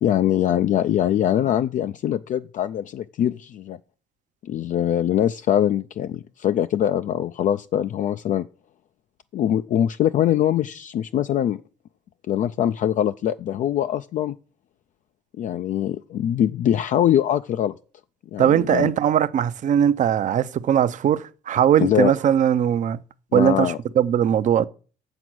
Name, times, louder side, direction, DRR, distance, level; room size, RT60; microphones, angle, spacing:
voice 1, 0.0-3.8 4.4-8.5 9.3-11.6 12.3-14.4 15.4-17.7 18.3-18.9 21.8-22.1 23.3-23.8, left 10 dB, 50° left, 0.4 m, -22 dB
voice 2, 18.4-23.0 23.3-24.7, right 9 dB, 45° right, 0.6 m, -20 dB
7.7 x 7.0 x 6.1 m
cardioid pair, 110°, 17 cm